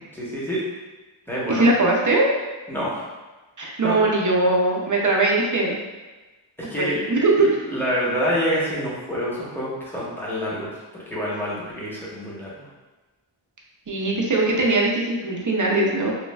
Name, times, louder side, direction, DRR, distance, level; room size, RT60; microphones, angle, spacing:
voice 1, 0.1-0.6 1.3-1.7 2.7-3.0 3.8-4.0 6.7-12.6, equal, 5° left, -8 dB, 0.9 m, -27 dB
voice 2, 1.5-2.3 3.6-5.8 6.8-7.5 13.9-16.1, right 2 dB, 40° right, -2 dB, 0.5 m, -20 dB
3.1 x 2.3 x 2.2 m, 1.2 s
wide cardioid pair, 55°, 49 cm